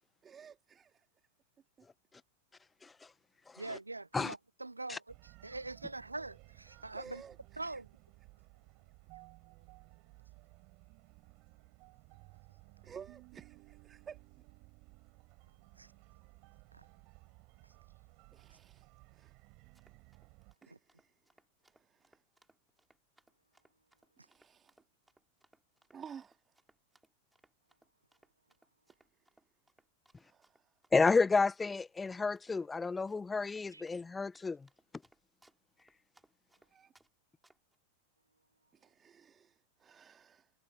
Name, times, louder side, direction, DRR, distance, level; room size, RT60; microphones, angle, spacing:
voice 1, 0.2-1.1 1.8-1.9 6.9-7.8 12.8-14.2 18.3-18.9 19.1-19.3 20.6-21.2 21.6-22.2 24.2-24.8 25.9-26.5 30.2-30.7 36.7-36.9 38.7-40.5, right 7 dB, 20° right, 2.3 m, -54 dB
voice 2, 1.8-2.2 2.8-3.1 3.5-3.8 4.1-4.3 4.9-5.0 30.9-34.7, left 4 dB, 10° left, 0.6 m, -31 dB
voice 3, 3.6-5.0 5.4-7.2 7.6-7.9 15.8-15.9 16.7-16.8 20.7-20.8 33.7-33.8, right 2 dB, 80° right, 0.5 m, -43 dB
sound 1, 5.1-20.5, right 27 dB, 40° right, 5.0 m, -59 dB
Run, 19.5-37.1 37.4-37.8, right 1 dB, 5° right, 6.2 m, -69 dB
figure-of-eight pair, 90°, 0 cm